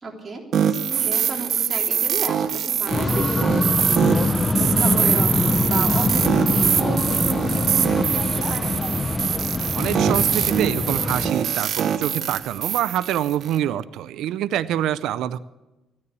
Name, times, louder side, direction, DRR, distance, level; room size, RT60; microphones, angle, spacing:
voice 1, 0.0-5.3 5.6-8.7, right 3 dB, 35° right, 1 dB, 3.4 m, -33 dB
sound 1, 0.5-13.6, right 8 dB, 65° right, 0.9 m, -23 dB
sound 2, 2.9-11.3, left 3 dB, 25° left, 0.7 m, -23 dB
voice 2, 9.7-15.4, right 11 dB, 85° right, 15 dB, 0.5 m, -25 dB
15.0 x 9.7 x 8.4 m, 1.0 s
cardioid pair, 90°, 0 cm